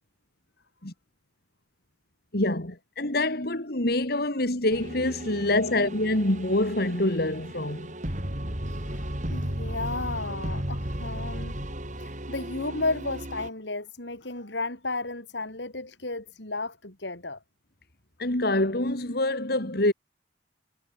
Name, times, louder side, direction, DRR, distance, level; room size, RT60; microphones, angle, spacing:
voice 1, 2.3-7.9 18.2-19.9, left 1 dB, 60° left, 3.3 m, -26 dB
sound 1, 4.7-13.5, right 1 dB, 45° right, 5.3 m, -35 dB
voice 2, 8.7-11.6 12.0-17.4, left 2 dB, 75° left, 5.6 m, -33 dB
head